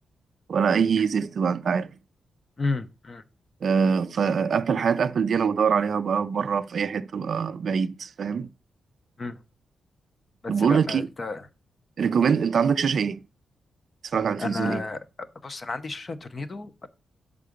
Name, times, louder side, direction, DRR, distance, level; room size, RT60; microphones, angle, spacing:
voice 1, 0.5-1.9 3.6-8.5 10.5-11.1 12.0-13.2 14.1-14.8, right 6 dB, 50° right, 0.4 m, -24 dB
voice 2, 2.6-3.2 9.2-9.4 10.4-11.5 14.4-16.9, left 3 dB, 30° left, 0.6 m, -32 dB
6.8 x 3.6 x 5.1 m
wide cardioid pair, 170°, 0 cm